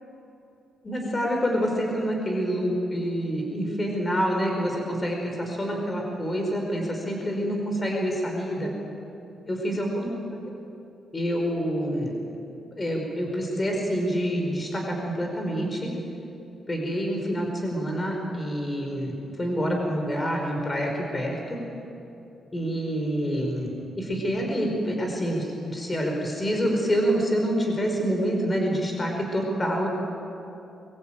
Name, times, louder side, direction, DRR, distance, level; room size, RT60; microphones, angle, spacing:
voice 1, 0.8-8.7 9.4-10.1 10.4-10.5 11.1-12.1 12.7-15.9 16.7-21.6 22.5-23.7 24.0-29.9, equal, 20° left, 1 dB, 5.1 m, -27 dB
23.5 x 22.5 x 9.2 m, 2.8 s
cardioid pair, 135°, 0 cm